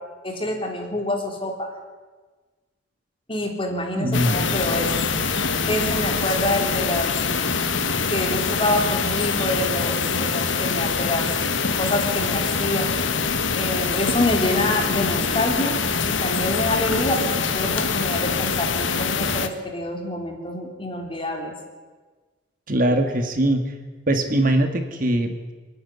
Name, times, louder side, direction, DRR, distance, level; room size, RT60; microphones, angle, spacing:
voice 1, 0.2-1.7 3.3-4.9 5.7-7.1 7.4-7.6 8.1-11.3 11.8-12.9 13.5-21.5, left 1 dB, 25° left, 2 dB, 3.3 m, -26 dB
voice 2, 4.0-4.3 22.7-23.7 24.1-25.5, right 1 dB, 45° right, 7 dB, 1.7 m, -21 dB
sound 1, 4.1-19.5, left 5 dB, 75° left, 1.5 m, -24 dB
27.5 x 9.7 x 9.9 m, 1.4 s
head